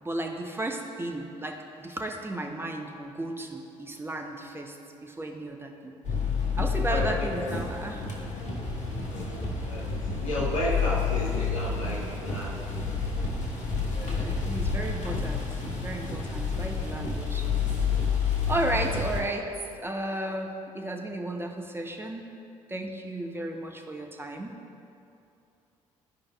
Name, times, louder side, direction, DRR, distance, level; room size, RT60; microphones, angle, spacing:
voice 1, 0.0-6.0 6.6-8.1 14.1-15.5 15.8-17.5 18.2-19.5 19.8-22.3 22.7-24.6, right 1 dB, 15° right, 2 dB, 0.8 m, -34 dB
sound 1, 6.0-19.2, left 5 dB, 50° left, 1.2 m, -29 dB
voice 2, 6.8-7.5 8.9-9.4 9.6-13.2 13.9-14.4, equal, 80° left, -4 dB, 1.1 m, -34 dB
14.0 x 5.0 x 2.3 m, 2.6 s
figure-of-eight pair, 45°, 17 cm